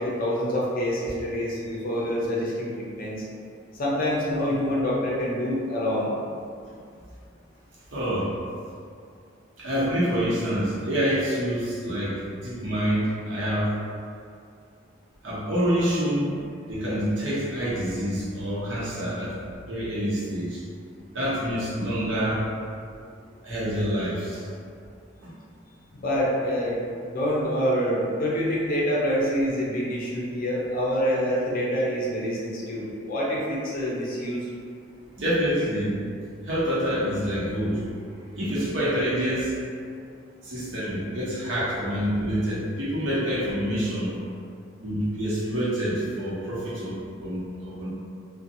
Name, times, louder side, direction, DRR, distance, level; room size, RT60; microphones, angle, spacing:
voice 1, 0.0-3.2 3.7-6.1 25.9-34.5, equal, 45° left, -5 dB, 0.6 m, -26 dB
voice 2, 7.9-8.3 9.6-13.8 15.2-16.4 16.7-19.4 19.7-20.6 21.1-22.5 23.4-24.5 35.2-36.0 36.4-37.9 38.3-39.5 40.4-44.2 44.8-47.9, equal, 90° right, -8 dB, 0.8 m, -27 dB
2.6 x 2.2 x 2.6 m, 2.3 s
head